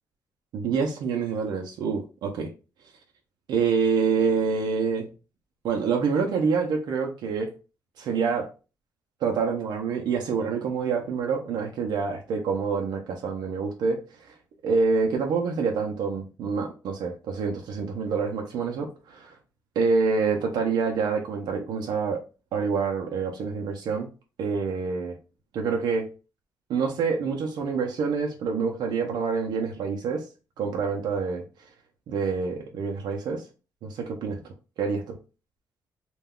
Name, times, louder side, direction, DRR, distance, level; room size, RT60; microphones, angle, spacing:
voice 1, 0.5-2.5 3.5-5.1 5.6-7.5 8.0-8.5 9.2-14.0 14.3-14.4 14.6-19.4 19.8-22.2 22.5-24.1 24.4-25.2 25.5-26.1 26.7-30.2 30.6-31.4 32.1-33.4 33.8-34.4 34.8-35.2, right 5 dB, 85° right, 0.5 m, -26 dB
2.3 x 2.2 x 3.5 m
cardioid pair, 130°, 7 cm